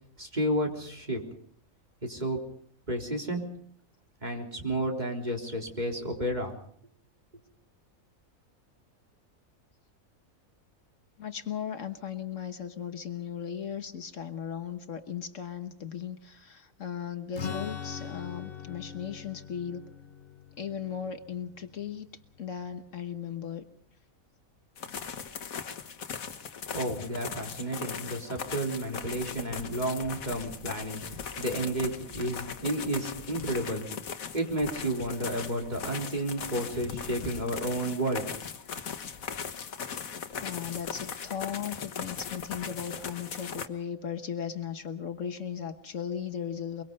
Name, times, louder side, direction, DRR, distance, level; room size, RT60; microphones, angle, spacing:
voice 1, 0.2-1.2 2.0-2.4 2.9-3.4 4.2-6.5 26.7-33.9 34.3-38.3, right 1 dB, 30° right, 1 dB, 4.0 m, -31 dB
voice 2, 11.2-19.9 20.6-22.1 22.4-23.6 40.4-46.8, left 8 dB, 65° left, 8 dB, 1.5 m, -37 dB
Strum, 17.3-23.0, left 7 dB, 45° left, 1.2 m, -42 dB
sound 1, 24.8-43.7, left 6 dB, 80° left, 1.6 m, -39 dB
23.5 x 23.5 x 5.4 m, 0.62 s
omnidirectional pair, 1.4 m